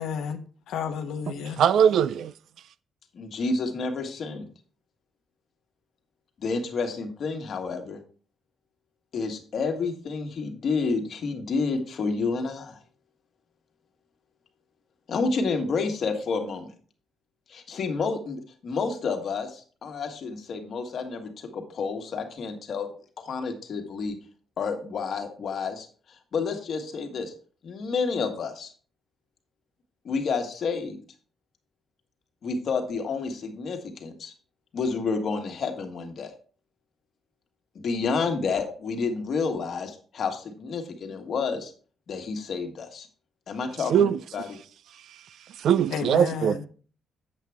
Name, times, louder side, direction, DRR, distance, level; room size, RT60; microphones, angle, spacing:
voice 1, 0.0-1.6 45.9-46.7, left 7 dB, 90° left, 0.9 m, -32 dB
voice 2, 1.6-2.3 43.9-44.1 45.6-46.7, right 8 dB, 65° right, 0.4 m, -20 dB
voice 3, 3.1-4.5 6.4-8.0 9.1-12.8 15.1-16.7 17.5-22.9 23.2-24.2 24.6-25.9 26.3-27.3 27.6-28.7 30.0-31.0 32.4-34.3 34.7-36.3 37.7-41.7 42.1-43.1 43.5-44.6, left 4 dB, 50° left, 1.5 m, -29 dB
8.4 x 7.5 x 3.5 m
cardioid pair, 150°, 0 cm